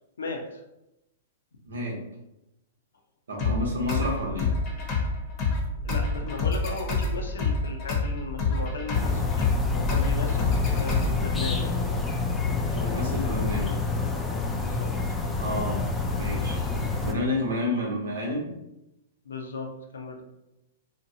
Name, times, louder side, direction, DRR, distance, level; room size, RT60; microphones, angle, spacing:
voice 1, 0.2-0.6 5.8-11.8 14.5-14.9 19.2-20.2, left 3 dB, 90° left, 3 dB, 0.5 m, -36 dB
voice 2, 1.7-2.0 3.3-4.5 12.7-13.8 15.4-15.9 16.1-16.6 17.0-18.5, left 1 dB, 85° right, -1 dB, 0.9 m, -30 dB
sound 1, 3.4-11.4, left 3 dB, 35° left, 0.7 m, -28 dB
sound 2, 8.9-17.1, left 4 dB, 10° left, 0.3 m, -27 dB
2.8 x 2.2 x 2.7 m, 0.90 s
hypercardioid pair, 135°, 0 cm